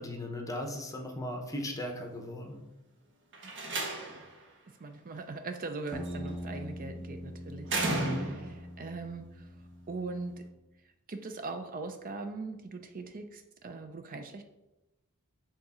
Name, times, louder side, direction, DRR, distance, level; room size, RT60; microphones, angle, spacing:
voice 1, 0.0-2.6 7.8-8.3, left 1 dB, 15° left, 3 dB, 0.8 m, -37 dB
Slam, 3.3-4.4 5.9-6.3 7.7-8.6, right 2 dB, 55° right, 1.3 m, -33 dB
voice 2, 3.4-4.1 4.8-7.7 8.0-9.6 9.9-10.4 10.8-14.4, right 3 dB, 40° right, 7 dB, 0.5 m, -41 dB
sound 1, 5.9-10.6, equal, 10° right, 1.0 m, -43 dB
7.1 x 3.7 x 4.2 m, 0.97 s
head